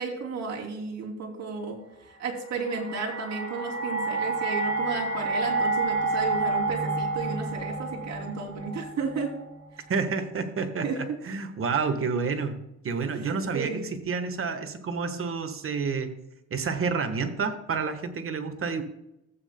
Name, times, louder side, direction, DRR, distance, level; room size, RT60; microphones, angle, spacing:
voice 1, 0.0-1.8 2.2-9.3 10.8-11.0 13.2-13.9, right 4 dB, 60° right, -1 dB, 2.8 m, -33 dB
sound 1, 2.3-9.4, right 3 dB, 75° right, 2.8 m, -29 dB
voice 2, 9.9-16.1 16.5-18.8, right 5 dB, 45° right, 8 dB, 1.3 m, -29 dB
14.0 x 8.5 x 2.2 m, 0.87 s
cardioid pair, 90°, 30 cm